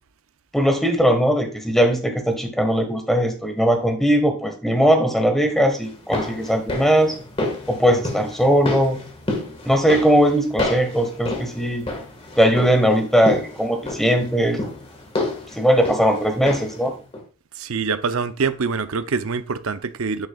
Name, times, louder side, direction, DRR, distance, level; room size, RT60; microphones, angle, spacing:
voice 1, 0.5-7.2 7.7-9.0 9.6-11.8 12.4-14.6 15.5-16.9, equal, ahead, 1.4 m, -19 dB
sound 1, 5.8-16.9 17.1-17.2, left 2 dB, 25° left, 1.6 m, -30 dB
voice 2, 17.5-20.3, right 5 dB, 70° right, 0.6 m, -25 dB
10.5 x 6.3 x 2.3 m
head